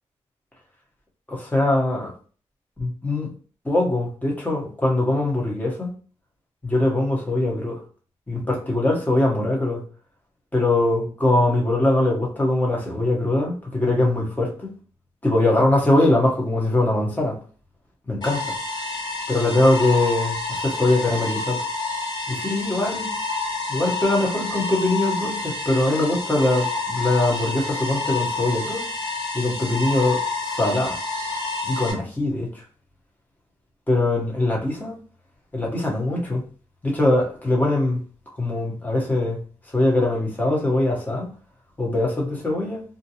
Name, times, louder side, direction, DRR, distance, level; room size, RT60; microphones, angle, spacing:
voice 1, 1.3-2.1 2.8-3.3 3.6-5.9 6.6-7.8 8.3-9.8 10.5-14.7 15.2-17.4 18.1-18.4 19.3-21.6 22.3-23.1 23.7-28.8 29.3-30.2 30.5-31.0 31.6-32.6 33.9-35.0 35.5-36.4 36.8-38.0 38.4-39.4 39.7-41.3 41.8-42.8, left 2 dB, 15° left, 1.0 m, -22 dB
sound 1, 18.2-31.9, left 3 dB, 40° left, 1.3 m, -28 dB
2.5 x 2.2 x 2.8 m
cardioid pair, 75°, 12 cm